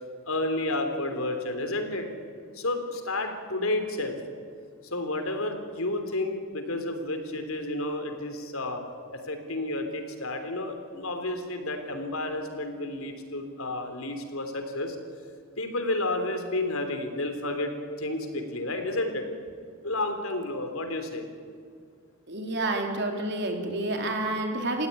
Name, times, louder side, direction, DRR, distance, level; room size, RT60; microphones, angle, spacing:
voice 1, 0.3-2.1 2.5-4.2 4.8-8.8 9.1-15.0 15.6-17.7 18.0-19.3 19.8-21.3, left 2 dB, 75° left, 6 dB, 3.6 m, -31 dB
voice 2, 22.3-24.9, right 2 dB, 50° right, 3 dB, 3.8 m, -29 dB
29.5 x 16.5 x 9.8 m, 2.2 s
head